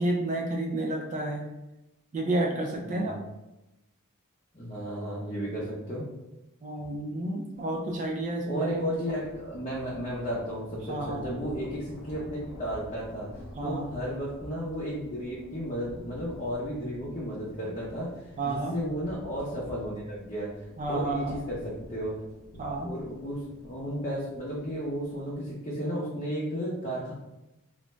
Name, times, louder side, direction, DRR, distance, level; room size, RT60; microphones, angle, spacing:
voice 1, 0.0-1.4 2.1-3.2 6.6-9.2 10.9-11.2 13.6-13.9 18.4-18.8 20.8-21.4 22.6-22.9, right 2 dB, 35° right, 1 dB, 0.3 m, -30 dB
voice 2, 2.8-3.2 4.5-6.1 8.4-13.3 13.6-20.5 20.9-22.1 22.8-27.1, equal, 30° left, -7 dB, 0.6 m, -33 dB
sound 1, 7.7-7.9 8.3-25.5, left 1 dB, 75° left, 0.7 m, -49 dB
2.5 x 2.1 x 3.0 m, 0.96 s
head